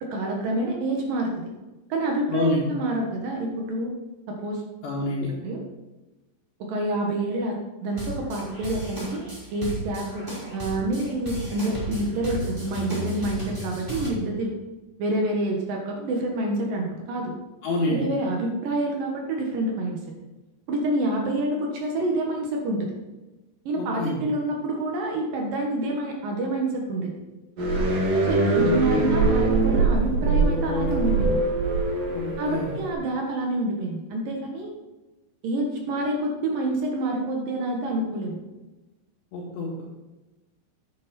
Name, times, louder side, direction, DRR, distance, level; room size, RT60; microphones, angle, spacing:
voice 1, 0.0-1.5 1.9-3.9 4.3-4.6 5.4-5.6 6.6-10.2 10.5-14.5 15.0-17.3 17.9-20.0 20.7-22.9 23.7-27.1 28.3-31.4 32.4-34.7 35.4-38.4, right 1 dB, 65° right, 1 dB, 2.2 m, -27 dB
voice 2, 2.3-2.6 4.8-5.3 17.6-18.0 23.8-24.2 28.6-29.1 32.1-32.7 39.3-39.8, left 2 dB, 65° left, -5 dB, 3.7 m, -27 dB
sound 1, 7.9-14.1, right 1 dB, 15° right, 2.3 m, -34 dB
sound 2, 27.6-32.9, right 3 dB, 50° right, 2.0 m, -23 dB
10.5 x 9.1 x 4.3 m, 1.1 s
omnidirectional pair, 5.9 m